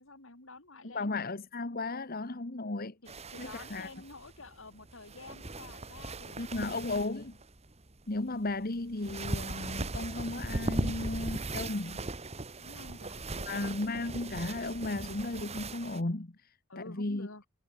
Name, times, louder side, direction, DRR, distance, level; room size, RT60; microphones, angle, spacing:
voice 1, 0.0-1.1 3.0-6.4 6.9-7.2 12.6-13.7 16.7-17.4, left 2 dB, 80° left, 5.0 m, -50 dB
voice 2, 0.8-3.0 3.4-3.9 6.4-7.4 8.1-12.1 13.4-17.3, left 2 dB, 50° left, 1.4 m, -35 dB
Folding Fabric Sheets, 3.1-16.0, right 2 dB, 30° right, 1.9 m, -38 dB
head